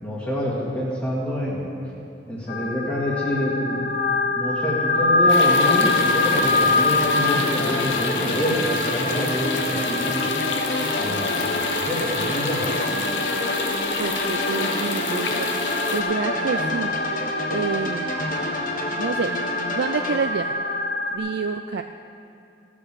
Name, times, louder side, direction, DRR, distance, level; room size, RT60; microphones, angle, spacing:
voice 1, 0.0-1.7 2.3-4.0 4.4-10.2 11.0-11.6 11.9-12.7, equal, 15° left, -7 dB, 1.9 m, -27 dB
sound 1, 2.5-21.2, left 3 dB, 85° left, 2.1 m, -25 dB
sound 2, 5.3-16.0, left 3 dB, 70° left, 1.3 m, -29 dB
sound 3, 5.4-20.1, left 1 dB, 50° left, 1.6 m, -29 dB
voice 2, 13.6-16.9 17.5-18.1 19.0-19.3 19.7-20.6 21.1-21.8, right 5 dB, 65° right, 7 dB, 0.4 m, -28 dB
15.5 x 8.7 x 6.8 m, 2.7 s
head